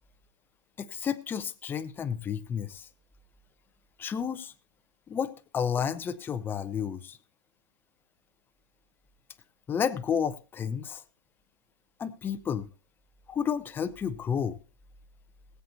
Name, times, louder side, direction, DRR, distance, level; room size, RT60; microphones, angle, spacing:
voice 1, 0.8-2.9 4.0-4.5 5.1-7.2 9.7-11.0 12.0-12.7 13.3-14.6, left 7 dB, 15° left, 0.6 m, -31 dB
21.0 x 8.2 x 2.7 m
hypercardioid pair, 140°, 15 cm